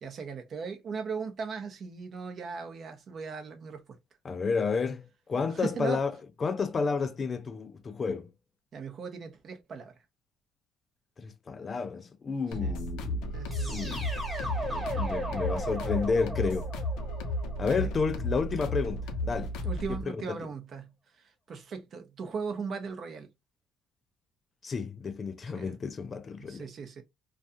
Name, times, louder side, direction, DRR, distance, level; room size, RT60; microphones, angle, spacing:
voice 1, 0.0-3.8 5.6-6.0 8.7-9.9 12.6-12.7 13.3-13.8 14.9-15.1 17.7-17.9 19.6-20.9 21.5-23.3 25.5-25.8 26.5-27.0, right 5 dB, 45° right, 0.6 m, -38 dB
voice 2, 4.2-8.3 11.2-13.4 13.7-14.1 14.4-16.7 17.6-19.5 20.1-20.5 24.6-26.7, left 5 dB, 30° left, 0.3 m, -31 dB
sound 1, 12.5-20.0, left 1 dB, 85° left, 0.6 m, -33 dB
sound 2, 13.5-18.4, equal, 5° right, 1.0 m, -37 dB
2.4 x 2.3 x 2.6 m
cardioid pair, 120°, 0 cm